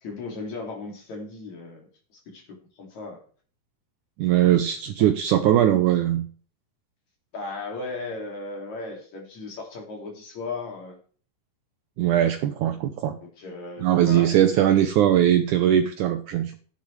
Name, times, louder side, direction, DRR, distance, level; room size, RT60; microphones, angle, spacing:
voice 1, 0.0-1.9 2.1-3.2 7.3-11.0 13.2-14.9, left 3 dB, 50° left, 1 dB, 3.7 m, -36 dB
voice 2, 4.2-6.3 12.0-13.2 13.8-16.6, right 11 dB, 80° right, 8 dB, 1.8 m, -20 dB
14.5 x 9.8 x 3.3 m, 0.43 s
omnidirectional pair, 4.2 m